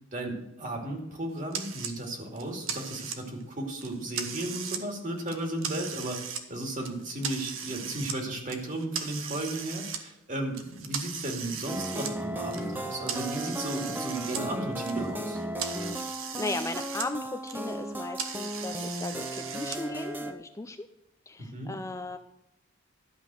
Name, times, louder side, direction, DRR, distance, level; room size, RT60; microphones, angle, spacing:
voice 1, 0.1-6.2 6.5-15.4 21.4-21.7, right 1 dB, 40° right, 2 dB, 2.4 m, -35 dB
sound 1, 1.5-1.9 2.4-3.4 3.8-4.8 5.2-6.4 6.8-8.2 8.5-10.0 10.5-14.4 14.7-17.1 17.4-19.8, right 7 dB, 90° right, 1.3 m, -38 dB
sound 2, 11.7-20.3, right 1 dB, 10° right, 0.8 m, -35 dB
voice 2, 16.4-20.9 21.3-22.2, left 2 dB, 15° left, 8 dB, 0.4 m, -36 dB
12.0 x 5.5 x 7.6 m, 0.89 s
head